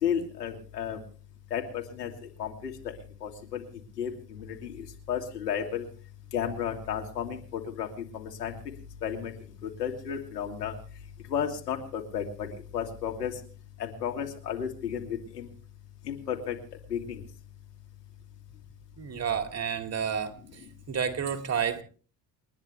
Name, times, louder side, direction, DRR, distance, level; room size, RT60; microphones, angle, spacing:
voice 1, 0.0-1.0 1.5-2.1 2.4-2.9 3.2-3.6 4.0-5.9 6.3-7.9 8.1-8.5 9.0-9.3 9.6-10.7 11.3-12.5 12.7-13.4 13.8-15.5 16.0-16.5 16.9-17.2, left 8 dB, 80° left, 3 dB, 2.8 m, -33 dB
voice 2, 19.0-20.3 20.9-21.8, right 7 dB, 30° right, 7 dB, 2.4 m, -30 dB
29.5 x 10.5 x 3.4 m, 0.40 s
hypercardioid pair, 65°, 48 cm